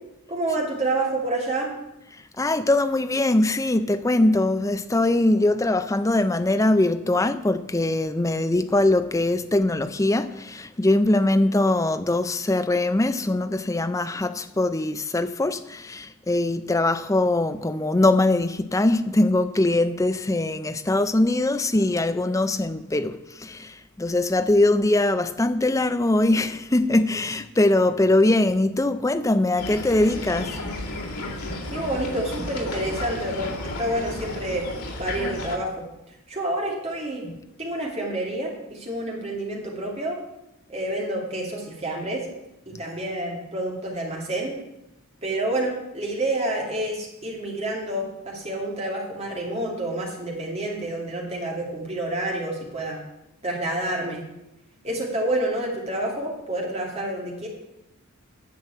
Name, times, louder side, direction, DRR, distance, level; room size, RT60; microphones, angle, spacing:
voice 1, 0.3-1.7 31.7-34.7 35.0-35.8 36.3-37.3 37.6-40.2 40.7-42.3 42.7-44.6 45.2-53.0 53.4-54.2 54.8-57.5, right 1 dB, 30° right, 2.5 m, -28 dB
voice 2, 2.4-30.8 37.3-37.4, left 2 dB, 15° left, 0.4 m, -22 dB
sound 1, 29.6-35.6, left 2 dB, 90° left, 2.1 m, -33 dB
9.9 x 6.1 x 8.4 m
head